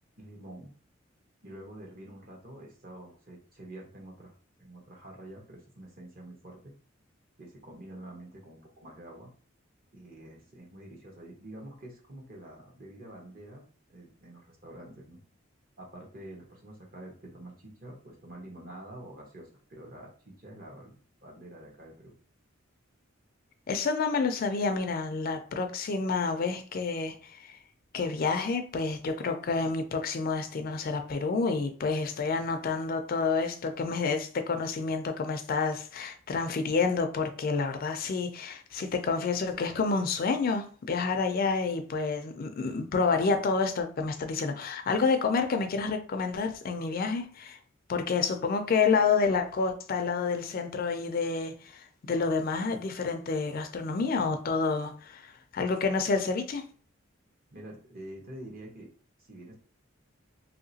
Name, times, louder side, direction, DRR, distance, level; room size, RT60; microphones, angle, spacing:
voice 1, 0.2-0.7 1.4-4.3 4.6-6.7 7.4-9.3 9.9-13.6 13.9-15.2 15.8-21.0 21.2-22.1 57.5-58.9 59.3-59.6, right 1 dB, 50° right, 1.0 m, -47 dB
voice 2, 23.7-27.6 27.9-47.6 47.9-56.7, left 4 dB, 50° left, 0.4 m, -29 dB
2.9 x 2.8 x 2.7 m
head